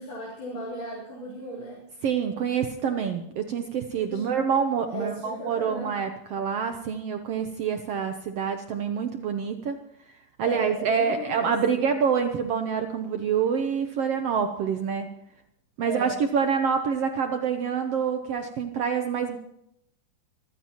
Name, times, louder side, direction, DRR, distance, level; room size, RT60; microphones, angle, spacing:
voice 1, 0.0-1.8 4.1-4.3 4.9-5.9 10.4-11.8 15.8-16.2, equal, 55° left, -6 dB, 5.3 m, -36 dB
voice 2, 2.0-9.8 10.4-15.1 15.8-19.4, right 7 dB, 80° right, 6 dB, 1.3 m, -26 dB
25.0 x 15.0 x 3.0 m, 0.78 s
omnidirectional pair, 4.0 m